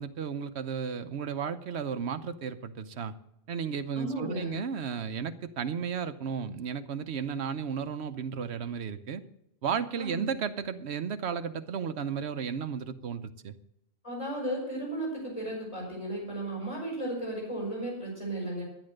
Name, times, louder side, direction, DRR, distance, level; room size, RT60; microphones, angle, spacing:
voice 1, 0.0-3.2 3.5-9.2 9.6-13.6, right 6 dB, 85° right, 11 dB, 1.1 m, -34 dB
voice 2, 4.0-4.6 10.0-10.3 14.0-18.6, right 1 dB, 30° left, -3 dB, 6.0 m, -34 dB
11.0 x 10.5 x 6.4 m, 0.79 s
omnidirectional pair, 1.1 m